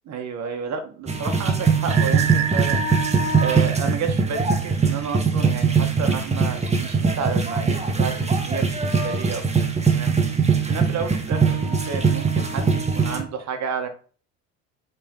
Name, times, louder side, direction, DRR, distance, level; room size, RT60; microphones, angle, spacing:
voice 1, 0.1-2.8 3.4-9.7 9.9-10.1 10.7-13.9, right 6 dB, 45° right, 5 dB, 1.9 m, -31 dB
sound 1, 1.1-13.2, right 5 dB, 15° right, 1.8 m, -21 dB
sound 2, 1.9-4.7, right 9 dB, 70° right, 0.8 m, -30 dB
7.3 x 5.5 x 4.0 m, 0.42 s
figure-of-eight pair, 65°, 40 cm